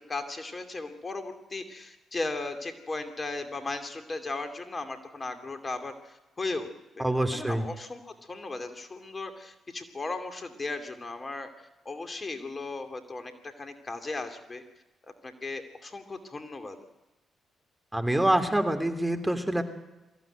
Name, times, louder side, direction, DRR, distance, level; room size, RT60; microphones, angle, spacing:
voice 1, 0.1-6.7 6.9-14.6 15.2-16.8, left 3 dB, 35° left, 7 dB, 2.6 m, -36 dB
voice 2, 7.0-7.6 17.9-19.6, right 1 dB, 10° right, 6 dB, 3.1 m, -26 dB
22.5 x 15.0 x 9.1 m, 1.1 s
hypercardioid pair, 40°, 0 cm